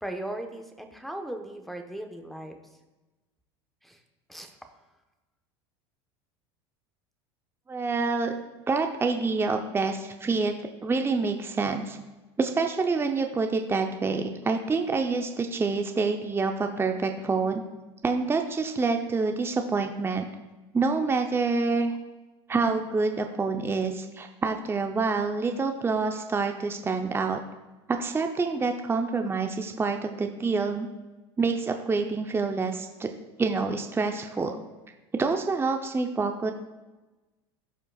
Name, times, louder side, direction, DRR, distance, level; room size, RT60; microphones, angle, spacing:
voice 1, 0.0-2.6 3.8-4.0 4.3-4.5, right 1 dB, ahead, 6 dB, 1.1 m, -37 dB
voice 2, 7.7-8.3 8.7-10.5 10.8-12.0 12.4-17.6 18.0-20.3 20.7-22.0 22.5-27.4 27.9-30.9 31.4-33.1 33.4-34.6 35.1-36.5, right 4 dB, 15° right, 5 dB, 0.7 m, -27 dB
16.0 x 5.4 x 2.4 m, 1.1 s
hypercardioid pair, 90°, 14 cm